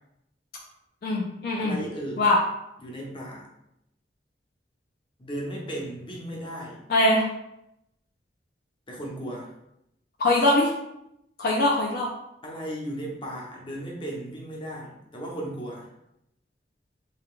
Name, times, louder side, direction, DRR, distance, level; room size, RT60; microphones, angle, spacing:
voice 1, 1.0-1.8 2.2-2.4 6.9-7.3 10.2-10.7 11.4-12.1, left 1 dB, 60° left, -3 dB, 0.5 m, -22 dB
voice 2, 1.6-2.2 2.8-3.5 5.2-6.8 8.9-9.5 12.4-15.9, right 1 dB, 30° left, -3 dB, 0.8 m, -35 dB
3.3 x 2.4 x 3.6 m, 0.82 s
head